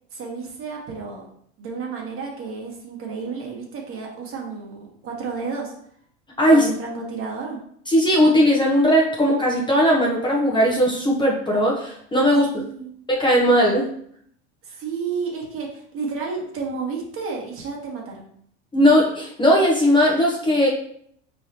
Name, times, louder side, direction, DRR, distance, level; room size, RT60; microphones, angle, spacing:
voice 1, 0.1-1.3 1.6-5.7 6.5-7.6 12.5-12.9 14.6-18.3, right 5 dB, 40° right, 0 dB, 1.3 m, -31 dB
voice 2, 6.4-6.7 7.9-12.6 13.1-13.9 18.7-20.7, equal, 15° left, -2 dB, 1.0 m, -18 dB
4.6 x 3.3 x 2.9 m, 0.65 s
hypercardioid pair, 100°, 34 cm